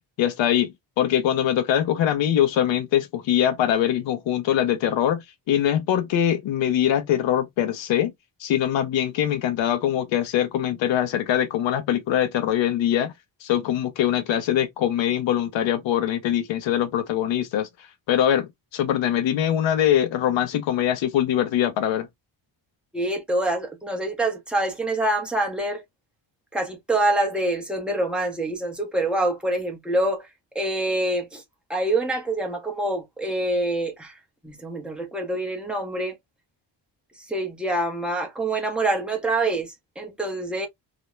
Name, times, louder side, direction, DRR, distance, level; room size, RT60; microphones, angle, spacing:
voice 1, 0.2-8.1 8.4-13.1 13.4-17.7 18.1-22.1, left 10 dB, 80° left, 0.6 m, -23 dB
voice 2, 22.9-25.8 26.5-30.3 30.5-31.4 31.7-34.2 34.4-36.2 37.2-40.7, right 2 dB, ahead, 0.6 m, -26 dB
2.4 x 2.1 x 2.9 m
wide cardioid pair, 165°, 44 cm